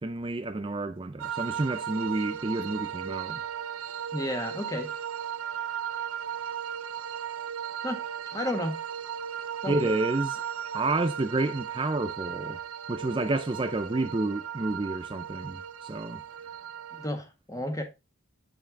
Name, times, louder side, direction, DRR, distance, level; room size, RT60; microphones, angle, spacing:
voice 1, 0.0-3.4 9.7-10.4 10.7-12.6 12.9-16.2, right 2 dB, 25° right, 0.4 m, -30 dB
sound 1, 1.2-17.1, right 9 dB, 85° right, 0.6 m, -36 dB
voice 2, 4.1-4.9 7.8-8.8 9.6-9.9 16.9-17.8, left 1 dB, 15° left, 1.6 m, -32 dB
8.9 x 5.6 x 3.7 m
head